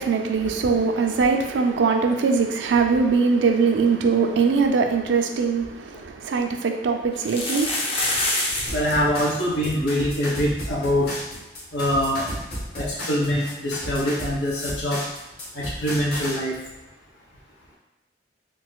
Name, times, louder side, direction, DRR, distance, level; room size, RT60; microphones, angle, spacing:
voice 1, 0.0-7.9, right 5 dB, 75° right, 4 dB, 0.4 m, -21 dB
sound 1, 5.5-5.6 5.9-6.0 7.1-8.9 9.2-9.3 9.5-9.7 10.3-10.4 10.7-10.8 12.8-12.9, left 2 dB, 30° left, 0.6 m, -26 dB
voice 2, 8.7-11.1 11.7-12.3 12.7-15.0 15.5-16.6, equal, 85° left, -4 dB, 1.0 m, -24 dB
sound 2, 8.7-16.4, left 1 dB, 60° left, 1.3 m, -34 dB
3.8 x 2.6 x 2.3 m, 1.1 s
head